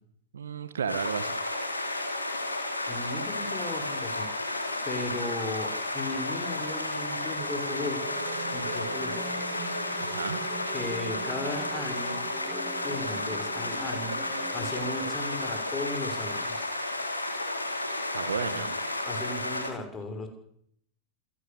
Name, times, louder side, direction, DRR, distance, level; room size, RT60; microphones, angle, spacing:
voice 1, 0.3-1.4 10.0-10.4 18.1-18.8, right 7 dB, 70° right, 12 dB, 2.0 m, -33 dB
sound 1, 0.9-19.7, left 2 dB, 85° left, 3.7 m, -32 dB
voice 2, 2.9-4.5 4.8-8.0 8.5-9.1 10.7-16.6 18.4-18.7 19.0-20.3, left 2 dB, 20° left, 6 dB, 6.0 m, -36 dB
sound 2, 6.4-11.4, equal, 85° right, 3.9 m, -48 dB
sound 3, 7.4-15.1, right 5 dB, 30° right, 3.3 m, -43 dB
27.0 x 14.5 x 7.1 m, 0.70 s
figure-of-eight pair, 90°, 0 cm